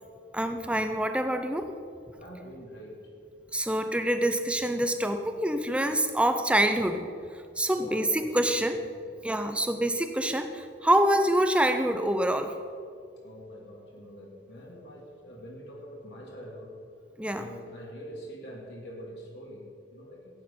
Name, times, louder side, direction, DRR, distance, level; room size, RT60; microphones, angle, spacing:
voice 1, 0.3-1.6 3.5-7.0 7.6-8.8 9.2-12.5 17.2-17.5, right 1 dB, 5° right, 7 dB, 0.7 m, -26 dB
voice 2, 2.1-3.0 7.7-8.3 8.6-8.9 13.2-16.7 17.3-20.2, equal, 65° left, -2 dB, 2.7 m, -44 dB
15.5 x 9.1 x 5.7 m, 2.4 s
head